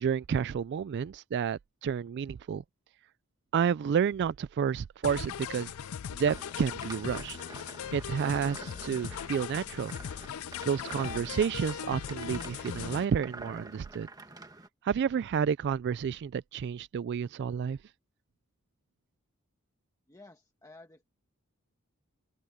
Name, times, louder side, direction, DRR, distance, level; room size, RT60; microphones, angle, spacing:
voice 1, 0.0-2.6 3.5-5.7 6.1-7.4 7.9-9.9 10.6-14.1 14.8-17.8, right 7 dB, 50° right, 0.3 m, -30 dB
sound 1, 5.0-13.0, left 8 dB, 65° left, 0.4 m, -39 dB
sound 2, 6.2-14.7, right 2 dB, 15° right, 1.4 m, -48 dB
voice 2, 20.1-21.0, left 2 dB, 15° left, 1.3 m, -53 dB
open air
head